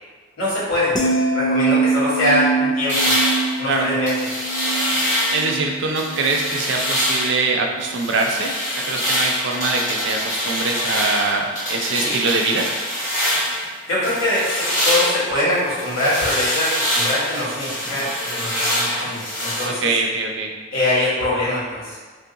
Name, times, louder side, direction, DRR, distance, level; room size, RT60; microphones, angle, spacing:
voice 1, 0.4-0.9 1.3-3.1 3.6-4.4 12.0-12.2 13.9-19.9 20.7-22.0, left 1 dB, 85° left, -9 dB, 1.5 m, -23 dB
sound 1, 0.9-7.2 7.6-7.9, right 3 dB, 20° left, 0.3 m, -24 dB
sound 2, 2.9-5.6 6.0-7.4 7.8-13.7 14.0-19.6, equal, 40° left, 1.4 m, -24 dB
voice 2, 5.3-12.7 19.7-20.5, right 3 dB, 65° right, 1 dB, 0.4 m, -23 dB
2.7 x 2.4 x 3.7 m, 1.4 s
head